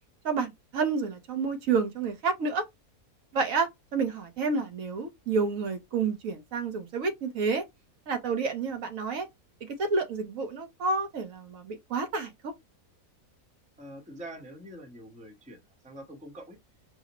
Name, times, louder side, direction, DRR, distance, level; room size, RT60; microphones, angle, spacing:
voice 1, 0.2-2.6 3.3-7.6 8.1-9.3 9.8-12.5, right 4 dB, 65° right, 1.2 m, -29 dB
voice 2, 13.8-15.6 15.8-16.6, right 1 dB, 5° right, 0.7 m, -44 dB
4.9 x 2.1 x 2.8 m
omnidirectional pair, 1.6 m